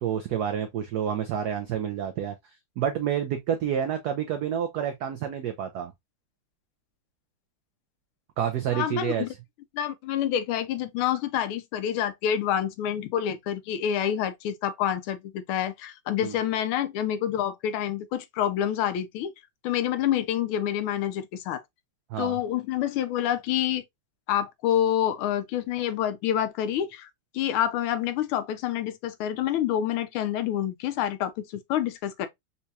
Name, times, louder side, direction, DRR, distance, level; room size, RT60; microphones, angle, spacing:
voice 1, 0.0-2.3 2.8-5.9 8.4-9.3 16.2-16.4 22.1-22.4, right 9 dB, 85° right, 0.8 m, -28 dB
voice 2, 8.7-9.3 9.7-19.3 19.6-21.6 22.2-23.8 24.3-32.3, left 10 dB, 90° left, 1.5 m, -27 dB
4.3 x 2.3 x 2.6 m
omnidirectional pair, 2.3 m